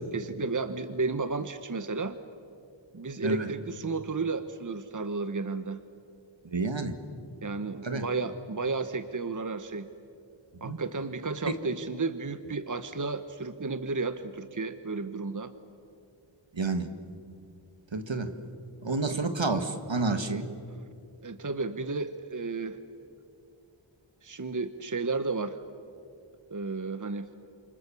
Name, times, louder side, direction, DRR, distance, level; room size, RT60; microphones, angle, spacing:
voice 1, 0.1-2.2 2.9-5.8 7.4-9.9 10.6-15.5 21.2-22.8 24.2-25.6 26.5-27.3, right 3 dB, 40° right, 11 dB, 1.0 m, -33 dB
voice 2, 6.5-6.9 7.8-8.1 10.6-10.8 11.5-11.6 16.5-16.9 17.9-18.3 18.8-20.5, right 3 dB, 70° right, 8 dB, 1.9 m, -29 dB
29.0 x 27.5 x 7.1 m, 2.5 s
wide cardioid pair, 45°, 47 cm